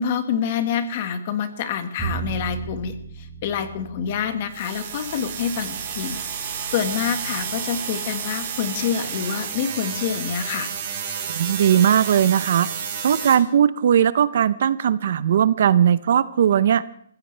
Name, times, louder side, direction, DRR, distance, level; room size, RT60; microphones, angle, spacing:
voice 1, 0.0-10.7, left 8 dB, 35° left, 8 dB, 1.6 m, -27 dB
Bowed string instrument, 2.0-8.2, right 7 dB, 5° right, 4.5 m, -37 dB
sound 1, 4.5-13.4, right 7 dB, 35° right, 3.8 m, -31 dB
voice 2, 11.3-12.7 13.0-16.8, right 9 dB, 50° right, 16 dB, 0.7 m, -18 dB
23.0 x 15.5 x 3.3 m, 0.64 s
hypercardioid pair, 170°, 0 cm